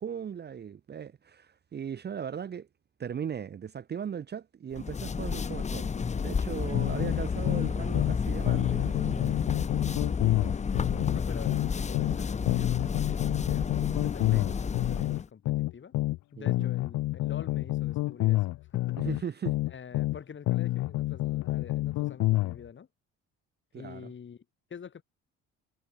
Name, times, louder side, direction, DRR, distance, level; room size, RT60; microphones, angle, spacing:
voice 1, 0.0-2.7 3.0-5.9 6.2-9.3 14.3-14.4 16.4-16.7 19.0-19.6 23.7-24.1, right 8 dB, 35° right, 0.9 m, -38 dB
sound 1, 4.7-15.3, left 5 dB, 25° left, 0.8 m, -31 dB
sound 2, 6.7-8.2 8.5-12.2 12.5-16.2 16.5-20.2 20.5-22.6, left 17 dB, 70° left, 0.8 m, -28 dB
voice 2, 11.1-15.9 16.3-19.0 19.7-22.9 23.7-24.4 24.7-25.0, left 7 dB, 40° left, 6.9 m, -46 dB
cardioid pair, 110°, 30 cm